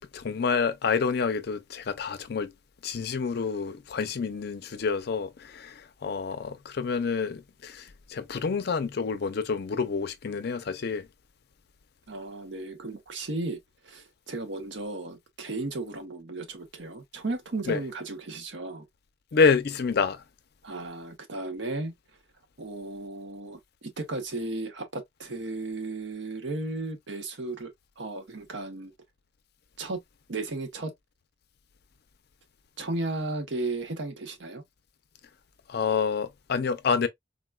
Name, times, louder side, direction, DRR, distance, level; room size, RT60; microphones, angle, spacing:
voice 1, 0.1-2.5 2.8-11.1 17.7-17.8 19.3-20.2 35.7-37.1, left 5 dB, 60° left, 0.5 m, -28 dB
voice 2, 12.1-18.9 20.6-21.9 22.6-28.9 29.8-30.0 30.3-30.9 32.8-34.6, right 2 dB, 75° right, 0.8 m, -35 dB
3.7 x 2.3 x 2.2 m
head